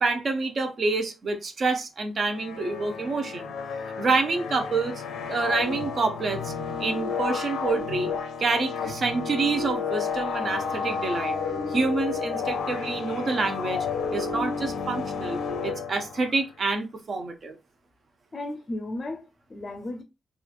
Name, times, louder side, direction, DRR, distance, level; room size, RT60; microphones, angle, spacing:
voice 1, 0.0-3.5 4.0-5.0 5.3-6.5 6.8-8.1 8.4-11.3 11.7-13.9 14.1-17.6, right 3 dB, 50° right, 0.6 m, -27 dB
sound 1, 2.3-16.4, left 5 dB, 85° left, 0.5 m, -31 dB
voice 2, 18.3-20.0, left 1 dB, 40° left, 0.5 m, -35 dB
3.0 x 2.4 x 2.4 m
cardioid pair, 80°, 0 cm